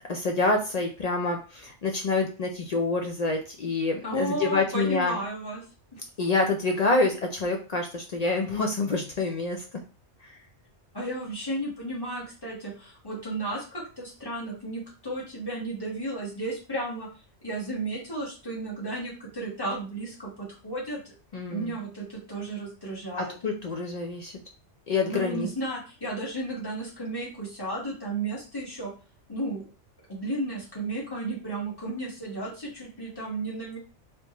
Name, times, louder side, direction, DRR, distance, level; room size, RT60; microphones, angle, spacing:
voice 1, 0.1-5.2 6.2-9.6 10.2-10.3 21.3-21.8 23.4-24.4 24.9-25.5, left 3 dB, 65° left, 2 dB, 0.4 m, -27 dB
voice 2, 4.0-5.6 5.9-6.0 10.9-17.1 17.4-21.1 21.5-23.3 25.0-28.9 29.3-29.6 30.1-33.8, right 2 dB, 20° left, -6 dB, 1.4 m, -33 dB
3.4 x 2.9 x 2.9 m, 0.35 s
omnidirectional pair, 1.3 m